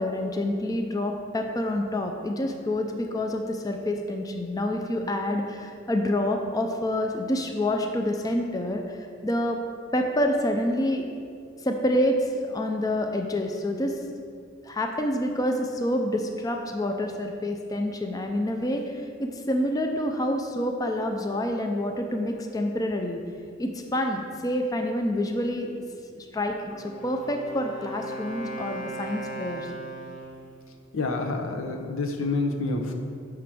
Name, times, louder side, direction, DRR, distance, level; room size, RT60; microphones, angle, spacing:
voice 1, 0.0-9.6 9.9-11.1 11.6-14.0 14.6-23.2 23.6-25.8 26.1-29.7, left 1 dB, 20° left, 3 dB, 0.4 m, -27 dB
Wind instrument woodwind instrument, 26.7-30.5, right 2 dB, 40° left, 0.9 m, -37 dB
voice 2, 30.9-32.9, left 3 dB, 90° left, 3 dB, 0.8 m, -28 dB
6.0 x 4.9 x 5.9 m, 2.3 s
head